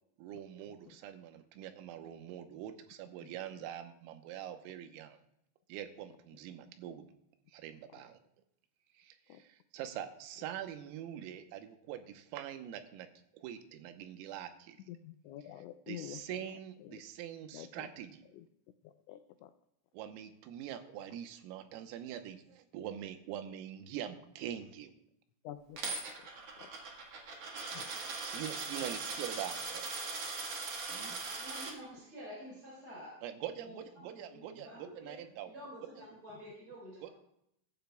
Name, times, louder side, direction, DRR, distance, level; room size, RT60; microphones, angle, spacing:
voice 1, 0.2-5.2 5.7-7.1 7.5-8.2 9.0-13.1 13.3-14.8 15.9-18.2 19.9-24.9 28.2-29.9 30.9-31.2 33.2-35.5 36.1-36.2 37.0-37.1, right 10 dB, 90° right, 7 dB, 3.7 m, -44 dB
voice 2, 14.9-16.2 16.9-17.0 17.5-17.9 18.8-19.5 25.4-26.0 26.6-26.7 27.7-27.9, left 12 dB, 90° left, 9 dB, 2.6 m, -47 dB
Coin (dropping), 25.8-31.7, right 3 dB, 70° right, 1.4 m, -40 dB
voice 3, 31.4-33.2 33.6-35.2 35.5-37.1, equal, 20° right, -6 dB, 4.4 m, -49 dB
22.5 x 12.0 x 2.3 m, 0.77 s
omnidirectional pair, 5.9 m